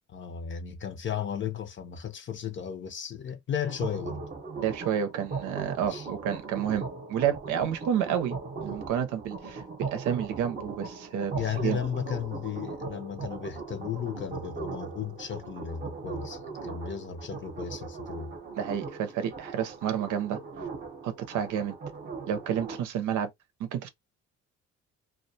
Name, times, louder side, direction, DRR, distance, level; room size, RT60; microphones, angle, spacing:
voice 1, 0.1-4.2 5.9-6.1 11.3-18.4, left 8 dB, 40° left, 0.6 m, -35 dB
sound 1, 3.6-22.8, right 4 dB, 30° right, 0.7 m, -39 dB
voice 2, 4.6-8.4 8.6-11.3 11.6-11.8 18.6-20.4 21.0-21.7 22.3-23.3 23.6-23.9, right 9 dB, 90° right, 0.7 m, -30 dB
2.2 x 2.1 x 2.7 m
cardioid pair, 90°, 30 cm